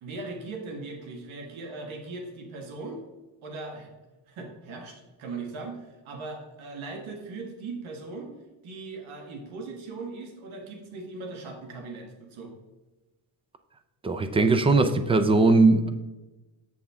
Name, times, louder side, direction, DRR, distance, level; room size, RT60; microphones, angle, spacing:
voice 1, 0.0-3.0 3.4-3.9 4.3-8.3 8.6-12.5, right 3 dB, 85° right, 2 dB, 1.7 m, -39 dB
voice 2, 14.0-15.9, right 3 dB, 15° right, 9 dB, 0.3 m, -20 dB
7.3 x 7.2 x 3.6 m, 1.1 s
cardioid pair, 160°, 47 cm